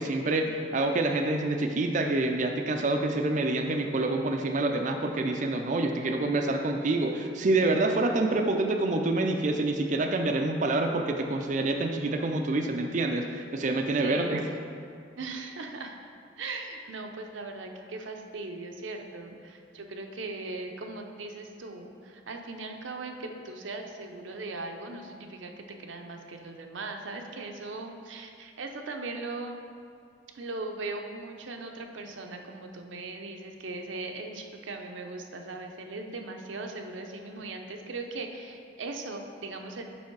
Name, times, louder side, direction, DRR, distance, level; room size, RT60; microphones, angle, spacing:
voice 1, 0.0-14.4, right 2 dB, 40° right, 4 dB, 0.4 m, -27 dB
voice 2, 14.0-14.4 15.2-16.0 16.4-25.5 25.8-29.6 30.3-39.8, right 3 dB, 80° right, 4 dB, 0.7 m, -39 dB
7.1 x 5.5 x 4.6 m, 2.3 s
head